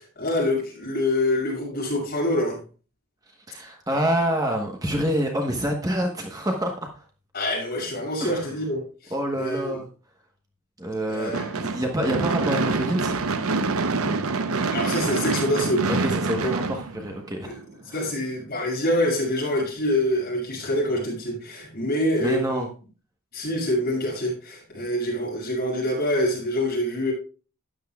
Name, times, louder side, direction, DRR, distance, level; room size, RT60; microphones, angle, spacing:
voice 1, 0.0-2.6 7.3-9.8 11.1-11.5 14.7-15.8 16.4-16.5 17.4-17.5 17.9-22.6 23.3-27.1, left 1 dB, 45° left, 6.5 m, -26 dB
voice 2, 3.5-7.0 8.2-8.5 9.1-9.9 10.8-13.2 15.9-17.6 17.9-18.1 22.2-22.7, equal, 15° right, 1.1 m, -27 dB
Gunshot gunfire / Fireworks, 11.3-17.6, right 3 dB, 80° right, 0.8 m, -26 dB
12.5 x 10.0 x 2.3 m
head